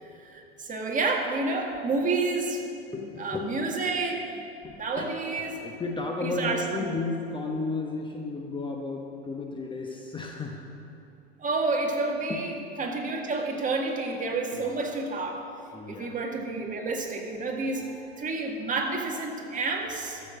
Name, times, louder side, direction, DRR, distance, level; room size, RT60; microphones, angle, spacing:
voice 1, 0.1-2.6 3.0-4.2 4.7-5.6 6.2-6.9 11.4-15.5 15.9-20.2, right 3 dB, 25° right, 1 dB, 1.9 m, -30 dB
voice 2, 2.9-3.5 4.6-10.7 12.3-12.4 14.5-14.7 15.7-16.1 17.8-17.9, left 3 dB, 15° left, 1 dB, 1.0 m, -34 dB
13.0 x 7.6 x 6.4 m, 2.8 s
hypercardioid pair, 100°, 32 cm